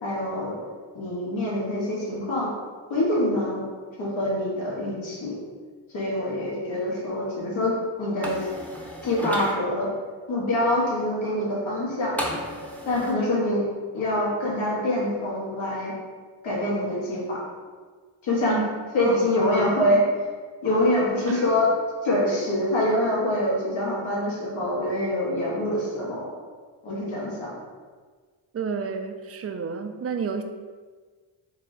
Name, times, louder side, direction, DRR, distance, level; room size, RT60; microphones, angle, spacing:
voice 1, 0.0-0.5 0.9-2.5 2.9-3.6 4.0-5.3 5.9-7.7 8.0-8.4 9.0-9.9 10.3-12.2 12.8-13.6 13.9-15.9 16.4-17.4 18.2-18.6 18.9-20.0 20.6-21.7 22.0-26.3 26.8-27.6, left 1 dB, 70° left, -4 dB, 1.4 m, -25 dB
sound 1, 8.2-9.5 12.2-13.1, equal, 5° left, 0.7 m, -33 dB
voice 2, 28.5-30.4, right 6 dB, 35° right, 7 dB, 0.4 m, -30 dB
4.5 x 2.1 x 3.8 m, 1.5 s
cardioid pair, 55°, 48 cm